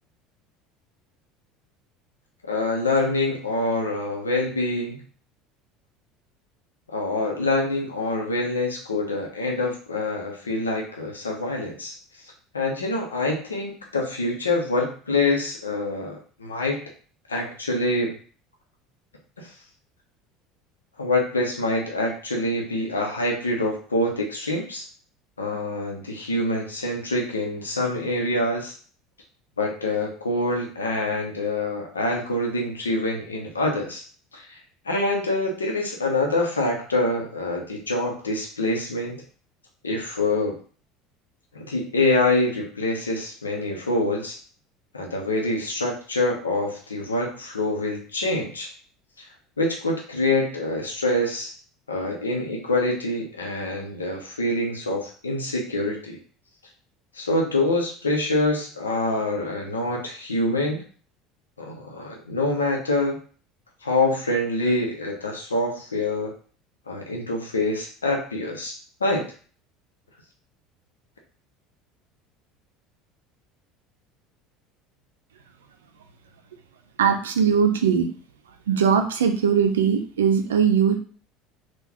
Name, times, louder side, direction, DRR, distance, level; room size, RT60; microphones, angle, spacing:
voice 1, 2.5-5.0 6.9-11.9 12.5-16.8 17.3-18.2 19.4-19.5 21.0-24.8 25.4-28.7 29.6-34.0 34.3-34.6 34.8-39.2 39.8-40.6 41.5-44.4 44.9-48.7 49.2-49.3 49.6-51.5 51.9-56.2 57.1-60.8 61.6-63.2 63.8-66.3 66.9-69.3, left 2 dB, 90° left, 0 dB, 0.8 m, -25 dB
voice 2, 77.0-78.1 78.7-81.0, right 7 dB, 80° right, 6 dB, 0.5 m, -20 dB
3.8 x 2.4 x 2.9 m, 0.43 s
hypercardioid pair, 70°, 0 cm